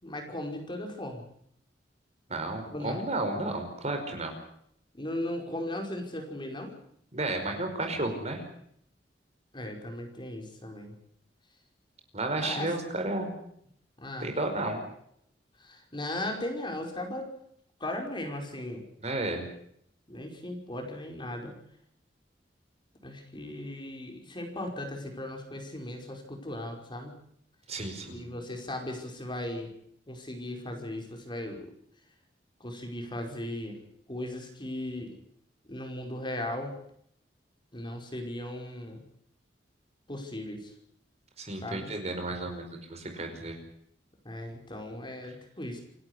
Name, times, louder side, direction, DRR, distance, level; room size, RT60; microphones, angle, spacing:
voice 1, 0.0-1.2 2.7-3.0 4.9-6.7 9.5-10.9 12.4-12.7 14.0-14.3 15.6-17.3 17.8-18.8 20.1-21.6 23.0-27.2 28.1-29.7 30.1-31.7 32.6-33.8 34.1-35.2 35.7-36.7 37.7-39.0 40.1-40.7 41.6-41.9 44.3-45.8, left 1 dB, 30° left, 3 dB, 5.2 m, -37 dB
voice 2, 2.3-4.4 7.1-8.4 12.1-13.3 14.2-14.8 19.0-19.5 27.7-28.3 41.4-43.6, right 2 dB, 40° right, 5 dB, 5.1 m, -32 dB
28.0 x 12.5 x 10.0 m, 0.69 s
head